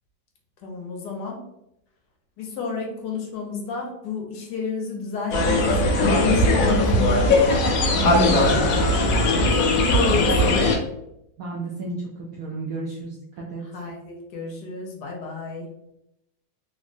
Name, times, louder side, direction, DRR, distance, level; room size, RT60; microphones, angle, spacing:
voice 1, 0.6-1.4 2.4-7.4 8.5-8.9 9.5-10.8 13.6-15.7, left 4 dB, 70° left, 0 dB, 1.2 m, -30 dB
sound 1, 5.3-10.8, left 1 dB, 90° left, 0.7 m, -19 dB
voice 2, 8.0-8.8 11.4-12.0 12.4-13.1 13.5-13.6, right 1 dB, 85° right, -4 dB, 0.7 m, -29 dB
3.4 x 2.0 x 2.5 m, 0.82 s
omnidirectional pair, 2.1 m